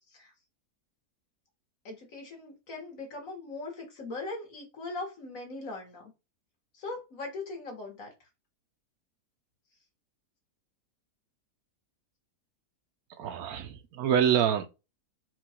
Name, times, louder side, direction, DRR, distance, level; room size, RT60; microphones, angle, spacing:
voice 1, 1.8-6.1 6.7-8.1, left 3 dB, 60° left, 1.9 m, -40 dB
voice 2, 13.2-14.7, right 9 dB, 75° right, 1.1 m, -26 dB
4.5 x 2.4 x 4.2 m
omnidirectional pair, 1.6 m